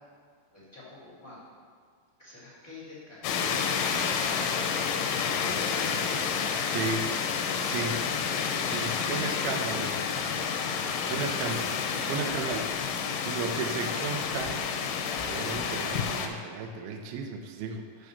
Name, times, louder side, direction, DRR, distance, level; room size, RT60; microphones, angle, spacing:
voice 1, 0.5-1.4 2.2-3.6 5.1-6.7 9.5-10.0 10.7-11.1 11.9-12.6, left 2 dB, 35° left, -10 dB, 1.5 m, -45 dB
sound 1, 3.2-16.3, left 6 dB, 80° left, 2.6 m, -30 dB
voice 2, 7.4-8.0 8.4-9.9 11.1-12.6 13.3-14.6 15.2-18.1, right 5 dB, 80° right, 4 dB, 2.2 m, -34 dB
8.4 x 3.8 x 6.9 m, 2.1 s
omnidirectional pair, 4.9 m